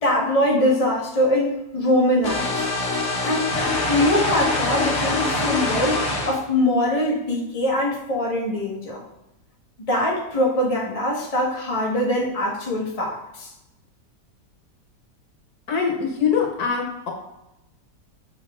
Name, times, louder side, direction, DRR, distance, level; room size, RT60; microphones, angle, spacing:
voice 1, 0.0-2.7 3.2-3.5 3.8-9.0 9.9-13.5, left 1 dB, 25° left, -3 dB, 1.3 m, -22 dB
sound 1, 2.2-6.4, left 2 dB, 50° left, 1.3 m, -24 dB
voice 2, 15.7-17.1, left 6 dB, 65° left, 0 dB, 1.6 m, -23 dB
7.0 x 4.4 x 3.6 m, 0.92 s
omnidirectional pair, 1.8 m